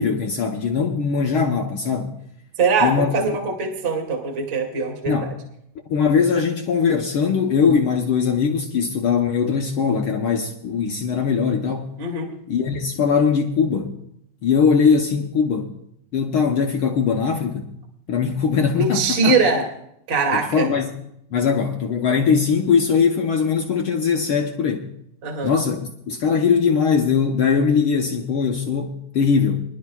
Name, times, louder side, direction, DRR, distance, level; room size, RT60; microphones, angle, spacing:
voice 1, 0.0-2.1 2.8-3.1 5.1-5.3 5.9-11.9 12.5-13.9 14.4-15.7 16.1-17.7 18.1-19.3 20.3-20.9 21.3-24.9 25.4-29.6, left 6 dB, 75° left, 1.2 m, -20 dB
voice 2, 2.6-5.3 12.0-12.3 18.7-19.7 20.1-20.7 25.2-25.5, right 4 dB, 35° right, 2.5 m, -22 dB
25.0 x 11.5 x 2.3 m
omnidirectional pair, 3.7 m